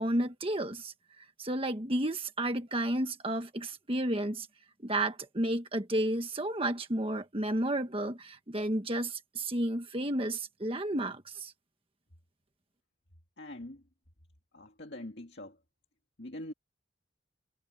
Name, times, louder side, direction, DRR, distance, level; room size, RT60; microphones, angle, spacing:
voice 1, 0.0-4.5 4.8-11.5, right 1 dB, 30° right, 1.4 m, -32 dB
voice 2, 13.4-13.8 14.5-15.6 16.2-16.5, left 1 dB, 65° left, 2.2 m, -43 dB
head